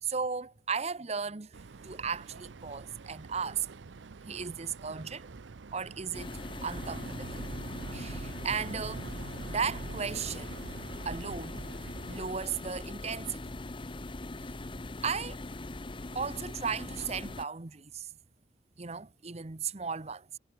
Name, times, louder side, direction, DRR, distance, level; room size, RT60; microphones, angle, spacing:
voice 1, 0.0-3.7 4.2-5.3 5.7-7.5 7.9-9.1 9.5-10.6 11.0-13.5 14.5-14.6 15.0-15.4 16.1-18.1 18.8-20.4, right 6 dB, 35° right, 0.9 m, -36 dB
Boat Water vehicle, 1.5-12.3, right 4 dB, 85° right, 0.6 m, -45 dB
sound 1, 6.1-17.4, left 2 dB, 30° left, 0.9 m, -41 dB
head